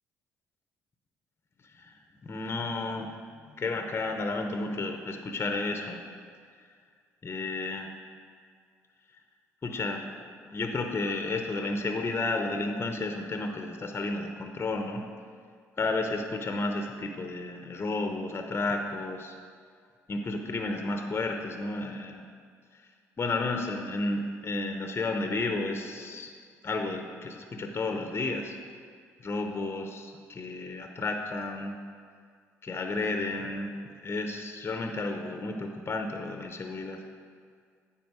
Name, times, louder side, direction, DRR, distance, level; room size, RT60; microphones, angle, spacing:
voice 1, 1.8-3.2 3.6-6.0 7.2-7.9 9.6-10.0 10.5-15.0 15.8-19.3 20.1-22.2 23.2-26.3 26.6-28.6 29.2-31.8 32.6-33.7 34.0-37.0, left 2 dB, 35° left, 4 dB, 0.9 m, -32 dB
9.4 x 4.2 x 6.2 m, 2.1 s
hypercardioid pair, 50°, 7 cm